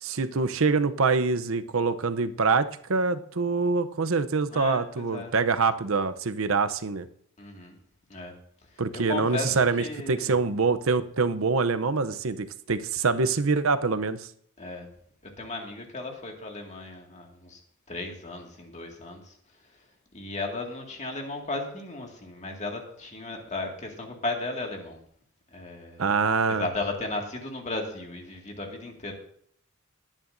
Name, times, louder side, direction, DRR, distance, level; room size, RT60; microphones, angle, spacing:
voice 1, 0.0-7.1 8.8-14.3 26.0-26.7, right 4 dB, 70° right, 11 dB, 0.7 m, -25 dB
voice 2, 4.5-5.3 7.4-7.8 8.1-8.3 8.9-10.4 14.6-14.9 15.4-17.6 17.9-19.4 20.1-25.0 25.5-26.0 26.5-29.1, left 2 dB, 35° left, 1 dB, 2.0 m, -35 dB
19.5 x 10.0 x 2.6 m, 0.64 s
head